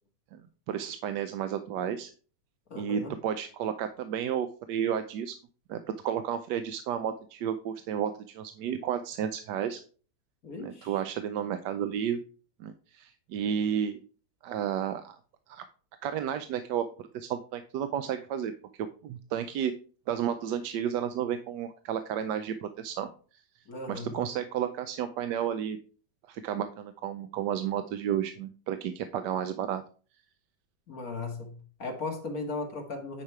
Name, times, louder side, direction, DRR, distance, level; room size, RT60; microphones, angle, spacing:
voice 1, 0.7-2.1 2.8-5.3 5.7-9.8 10.6-12.2 12.6-14.0 14.4-15.2 15.5-15.6 16.0-16.8 17.1-18.5 18.8-19.7 20.1-23.4 23.9-25.8 26.3-29.8, right 9 dB, 70° right, 10 dB, 1.2 m, -32 dB
voice 2, 2.7-3.1 10.4-11.0 23.7-24.1 30.9-33.2, left 3 dB, 50° left, 2 dB, 2.1 m, -37 dB
9.8 x 5.1 x 4.7 m, 0.40 s
omnidirectional pair, 2.0 m